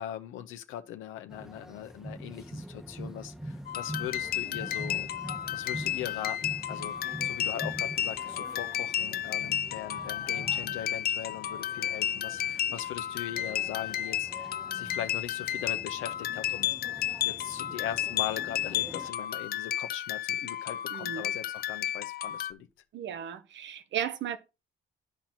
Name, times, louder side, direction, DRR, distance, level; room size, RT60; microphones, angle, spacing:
voice 1, 0.0-5.1 5.5-6.9 7.2-16.9 17.2-22.7, left 11 dB, 90° left, 0.8 m, -40 dB
sound 1, 1.3-19.1, right 1 dB, 5° right, 0.7 m, -45 dB
sound 2, 3.7-22.5, left 10 dB, 50° left, 0.4 m, -32 dB
voice 2, 20.9-21.3 22.9-24.4, right 9 dB, 70° right, 0.9 m, -35 dB
11.0 x 4.4 x 3.9 m
cardioid pair, 90°, 20 cm